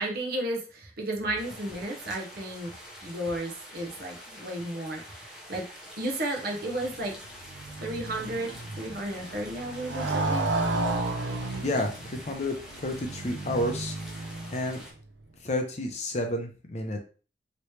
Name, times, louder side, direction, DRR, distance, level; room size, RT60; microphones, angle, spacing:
voice 1, 0.0-2.7 3.0-5.7 6.0-7.2 7.8-10.5, right 1 dB, 55° right, 1 dB, 0.8 m, -33 dB
sound 1, 1.4-14.9, equal, 5° right, 0.8 m, -46 dB
Motorcycle, 6.7-14.9, right 2 dB, 80° right, 0.6 m, -33 dB
voice 2, 11.6-14.8 15.4-17.0, left 1 dB, 35° left, 3 dB, 0.6 m, -31 dB
3.0 x 3.0 x 3.1 m, 0.38 s
head